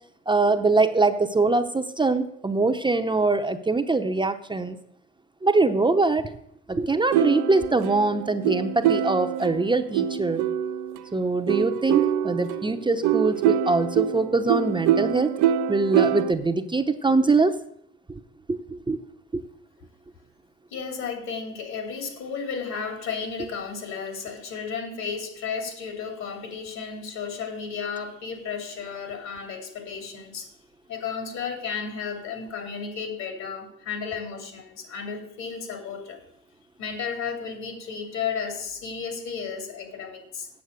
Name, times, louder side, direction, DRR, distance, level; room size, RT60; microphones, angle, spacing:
voice 1, 0.3-4.8 5.4-6.3 6.7-10.4 11.1-15.3 15.7-17.6 18.1-18.2 18.5-19.0 19.3-19.4, right 3 dB, 15° right, 7 dB, 0.7 m, -23 dB
sound 1, 7.1-11.0 11.5-16.3, right 10 dB, 70° right, 0.6 m, -25 dB
voice 2, 20.7-30.5 30.9-36.2 36.8-40.5, left 6 dB, 65° left, 4 dB, 2.8 m, -33 dB
8.3 x 7.1 x 6.5 m, 0.71 s
supercardioid pair, 70°, 30 cm